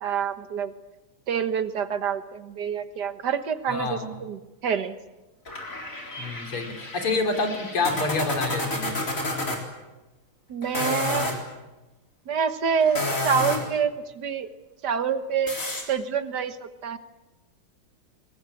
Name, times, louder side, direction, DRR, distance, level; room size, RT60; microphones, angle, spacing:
voice 1, 0.0-0.7 1.3-5.0 10.5-11.3 12.3-14.5 14.8-15.6 15.9-17.0, right 7 dB, 55° right, 11 dB, 1.7 m, -27 dB
voice 2, 3.7-4.1 6.2-9.0, left 3 dB, 85° left, 5 dB, 4.1 m, -27 dB
sound 1, 5.5-9.6 10.6-11.4 12.8-13.8 15.5-15.8, left 2 dB, 35° left, 4.4 m, -30 dB
22.5 x 20.0 x 9.8 m, 1.1 s
omnidirectional pair, 2.3 m